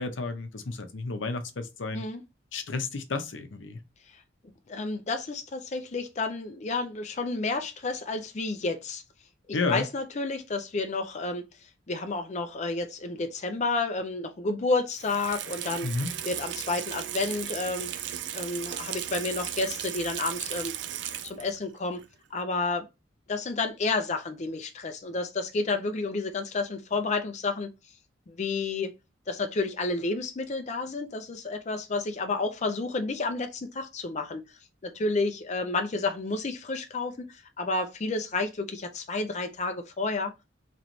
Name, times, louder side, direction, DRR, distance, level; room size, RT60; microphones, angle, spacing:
voice 1, 0.0-2.0 2.5-3.8 9.5-9.9 15.8-16.1, left 3 dB, 80° left, 0.7 m, -31 dB
voice 2, 4.7-9.0 9.5-11.4 11.9-15.9 16.3-17.9 18.3-20.7 21.2-22.0 22.3-22.9 23.3-27.7 28.3-28.9 29.3-34.4 34.8-40.3, left 3 dB, 35° left, 0.5 m, -30 dB
Water tap faucet / Sink (filling or washing), 14.9-21.6 22.0-22.1, right 10 dB, 65° right, 0.4 m, -36 dB
3.0 x 3.0 x 3.9 m
head